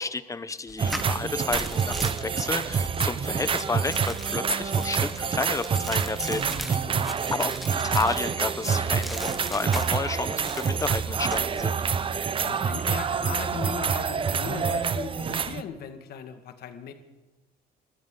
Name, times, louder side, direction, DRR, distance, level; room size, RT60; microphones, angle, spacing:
voice 1, 0.0-6.6 7.3-11.8, left 4 dB, 20° left, 13 dB, 0.8 m, -31 dB
sound 1, 0.7-8.5 9.0-10.1 10.4-11.4, equal, ahead, 1.1 m, -39 dB
sound 2, 0.8-15.6, right 6 dB, 30° right, 0.7 m, -27 dB
voice 2, 6.4-7.1 12.4-16.9, left 8 dB, 65° left, 6 dB, 1.8 m, -38 dB
21.0 x 14.5 x 3.8 m, 1.2 s
cardioid pair, 110°, 17 cm